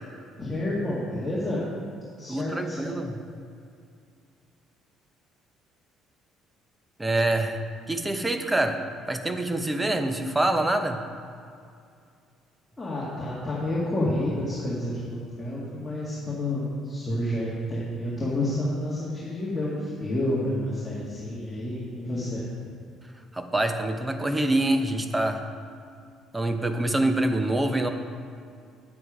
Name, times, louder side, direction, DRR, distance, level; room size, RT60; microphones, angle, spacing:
voice 1, 0.4-1.7 2.2-2.9 12.8-22.5, left 1 dB, 15° left, -8 dB, 2.1 m, -29 dB
voice 2, 2.3-3.2 7.0-7.6 7.9-8.8 9.1-11.0 23.3-25.4 26.3-27.9, right 1 dB, 10° right, 6 dB, 0.8 m, -25 dB
9.6 x 7.8 x 5.0 m, 2.3 s
cardioid pair, 110°, 0 cm